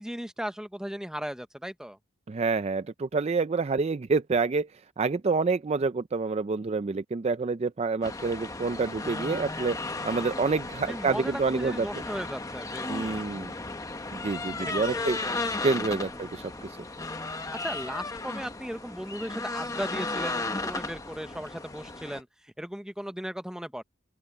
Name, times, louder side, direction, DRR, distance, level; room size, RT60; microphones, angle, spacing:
voice 1, 0.0-2.0 10.9-13.2 14.6-15.3 16.1-16.4 17.5-23.8, equal, 5° right, 0.8 m, -37 dB
voice 2, 2.3-4.7 5.0-9.8 10.0-11.9 12.9-13.5 14.1-15.2 15.6-16.8, right 4 dB, 30° right, 0.4 m, -27 dB
sound 1, 8.0-22.2, left 2 dB, 15° left, 1.1 m, -35 dB
open air
head